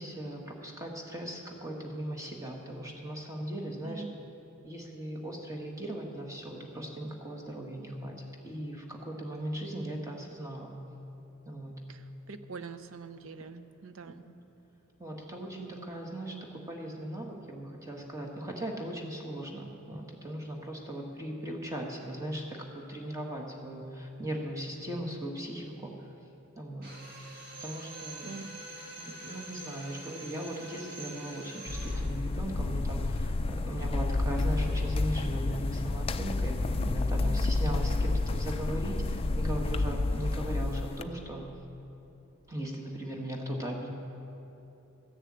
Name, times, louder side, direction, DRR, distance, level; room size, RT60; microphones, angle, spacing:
voice 1, 0.0-4.0 4.6-8.2 8.4-10.8 11.4-11.8 14.0-14.2 15.0-26.1 26.5-26.9 27.5-28.3 29.0-41.5 42.5-43.9, right 1 dB, 15° right, 0 dB, 1.5 m, -38 dB
voice 2, 3.8-4.1 11.9-14.2 28.3-28.6 37.4-37.6, right 4 dB, 65° right, 10 dB, 0.6 m, -44 dB
Drill, 26.8-32.1, right 2 dB, 45° right, 2.0 m, -45 dB
sound 1, 31.7-41.0, left 2 dB, 25° left, 0.3 m, -30 dB
14.0 x 6.8 x 8.7 m, 3.0 s
head